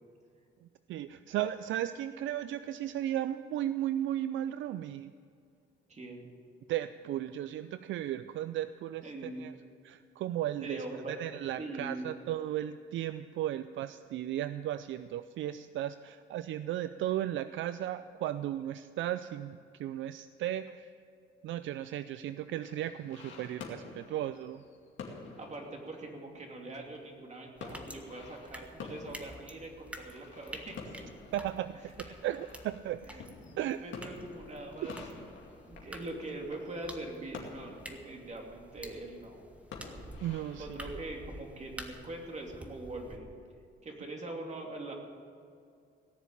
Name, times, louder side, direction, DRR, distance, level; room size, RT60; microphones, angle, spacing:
voice 1, 0.9-5.1 6.7-9.5 9.8-20.9 21.4-24.6 31.3-33.0 33.6-33.8 40.2-41.0, right 12 dB, 75° right, 13 dB, 0.4 m, -35 dB
voice 2, 5.9-6.2 9.0-9.5 10.6-11.2 11.6-12.2 25.4-30.8 32.0-32.2 33.1-35.0 35.7-39.5 40.6-43.4 43.8-44.9, right 2 dB, 35° right, 1 dB, 2.8 m, -42 dB
sound 1, 22.7-40.8, left 4 dB, 70° left, 2.4 m, -49 dB
sound 2, 27.6-43.2, equal, 5° right, 1.4 m, -49 dB
17.5 x 7.1 x 8.8 m, 2.4 s
cardioid pair, 90°, 20 cm